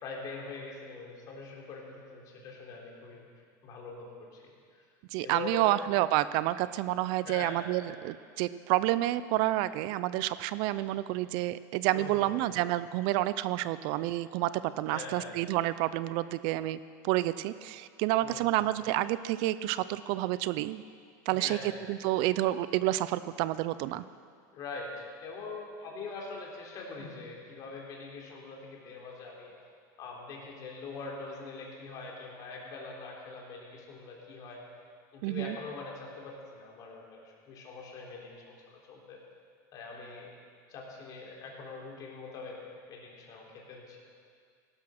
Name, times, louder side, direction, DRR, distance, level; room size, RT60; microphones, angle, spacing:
voice 1, 0.0-3.3 3.6-4.4 4.7-4.8 5.2-5.9 7.2-7.6 11.9-12.5 14.9-15.4 18.2-18.6 21.3-21.8 24.5-29.6 30.0-34.6 35.1-39.2 39.7-40.3 40.7-42.6 42.9-44.0, left 4 dB, 40° left, -1 dB, 3.5 m, -43 dB
voice 2, 5.1-16.8 17.0-20.8 21.3-21.6 21.9-24.0 35.2-35.6, right 15 dB, 55° right, 15 dB, 0.4 m, -29 dB
16.5 x 12.0 x 6.4 m, 2.2 s
supercardioid pair, 150°, 10 cm